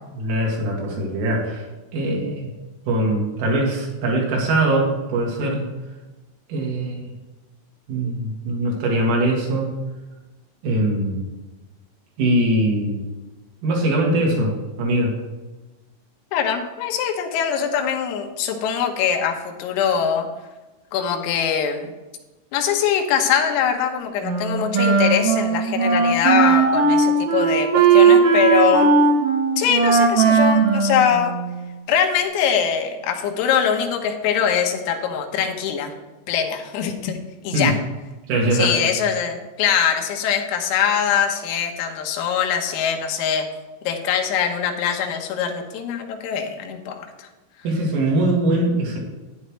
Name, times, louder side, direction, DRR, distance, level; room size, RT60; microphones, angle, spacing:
voice 1, 0.0-1.6 1.9-2.5 2.9-5.7 6.5-7.1 7.9-9.7 10.6-11.2 12.2-13.0 13.6-15.1 37.5-37.7 38.3-38.9 47.6-49.0, right 1 dB, 75° right, -2 dB, 4.6 m, -22 dB
voice 2, 16.3-20.3 20.9-21.9 22.5-28.9 29.6-31.3 31.9-35.9 36.3-37.2 37.4-37.8 38.5-43.5 43.9-47.3, left 7 dB, 90° left, 3 dB, 3.8 m, -22 dB
Wind instrument woodwind instrument, 24.2-31.7, right 5 dB, 90° right, 1.8 m, -17 dB
12.0 x 10.0 x 3.2 m, 1.1 s
omnidirectional pair, 5.9 m